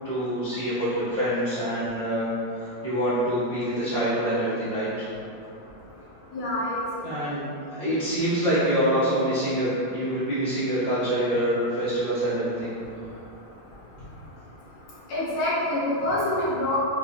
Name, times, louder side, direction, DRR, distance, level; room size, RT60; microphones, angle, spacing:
voice 1, 0.0-5.1 7.0-7.4 7.7-12.8, right 1 dB, 55° right, -14 dB, 0.4 m, -26 dB
voice 2, 6.3-6.8 15.1-16.8, left 1 dB, 80° left, -7 dB, 1.7 m, -26 dB
4.3 x 2.2 x 2.7 m, 2.5 s
omnidirectional pair, 2.2 m